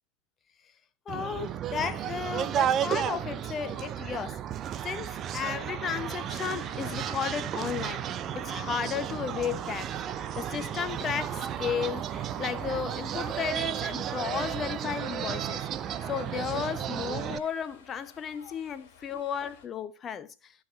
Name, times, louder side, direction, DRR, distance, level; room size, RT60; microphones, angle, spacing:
voice 1, 1.1-4.4 4.8-8.1 8.3-9.9 10.4-15.7 16.0-20.5, left 7 dB, 25° left, 0.8 m, -34 dB
sound 1, 1.1-17.4, right 10 dB, 30° right, 0.6 m, -33 dB
sound 2, 6.2-19.7, left 6 dB, 50° left, 2.8 m, -53 dB
14.0 x 5.0 x 4.2 m
figure-of-eight pair, 90°, 0 cm